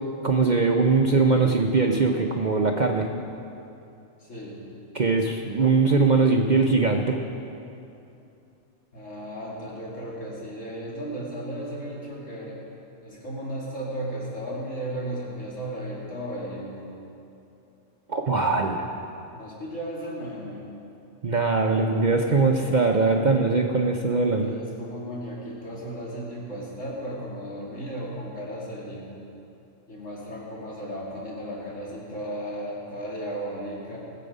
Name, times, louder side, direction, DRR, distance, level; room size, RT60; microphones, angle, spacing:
voice 1, 0.2-3.1 4.9-7.2 18.1-18.9 21.2-24.5, right 4 dB, 45° right, 2 dB, 0.7 m, -21 dB
voice 2, 4.2-4.6 8.9-12.6 13.0-16.9 19.3-20.7 24.4-29.1 29.9-34.0, right 1 dB, 70° left, -5 dB, 2.8 m, -35 dB
20.0 x 7.8 x 5.3 m, 2.7 s
omnidirectional pair, 1.4 m